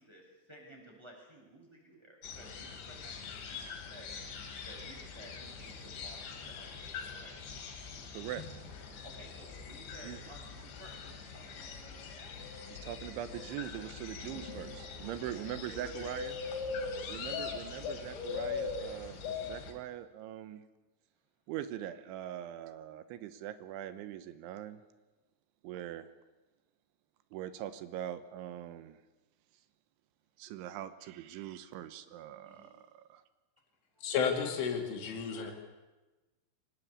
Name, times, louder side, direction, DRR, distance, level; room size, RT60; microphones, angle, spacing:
voice 1, 0.0-3.1 3.5-4.1 4.6-7.3 9.0-11.7 14.9-15.5 32.4-32.7 33.9-34.2 35.3-35.5, right 1 dB, 5° right, -1 dB, 6.8 m, -55 dB
sound 1, 2.2-19.7, left 5 dB, 70° left, 4.7 m, -42 dB
voice 2, 8.1-8.4 10.0-10.2 12.7-16.4 17.1-20.6 21.5-24.8 25.6-26.1 27.3-29.0 30.4-33.2, right 12 dB, 85° right, 12 dB, 3.3 m, -42 dB
voice 3, 34.0-35.5, left 6 dB, 85° left, 4 dB, 5.1 m, -32 dB
24.5 x 19.0 x 8.4 m, 1.1 s
omnidirectional pair, 5.5 m